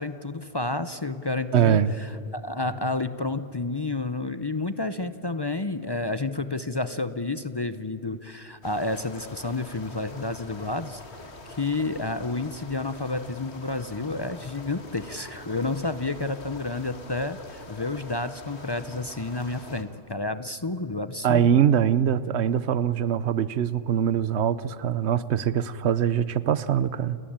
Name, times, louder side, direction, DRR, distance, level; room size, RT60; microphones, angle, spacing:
voice 1, 0.0-11.0 11.6-21.6, left 3 dB, 25° left, 0.6 m, -30 dB
voice 2, 1.5-1.9 21.2-27.2, right 9 dB, 80° right, 1.1 m, -23 dB
sound 1, 8.6-19.8, left 2 dB, 75° left, 2.3 m, -44 dB
30.0 x 18.5 x 8.8 m
omnidirectional pair, 1.1 m